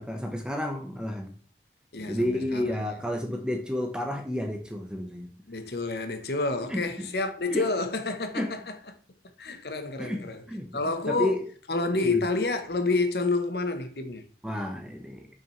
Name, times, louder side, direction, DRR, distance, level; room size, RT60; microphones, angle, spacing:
voice 1, 0.0-1.3 2.0-5.3 6.7-7.1 7.5-7.7 8.3-8.5 10.0-10.2 10.5-11.4 12.0-12.2 14.4-15.3, left 1 dB, 5° right, 0.9 m, -31 dB
voice 2, 1.9-3.0 5.5-8.6 9.4-10.4 10.7-11.4 11.7-14.2, left 3 dB, 65° left, 1.0 m, -29 dB
7.0 x 6.2 x 3.1 m
head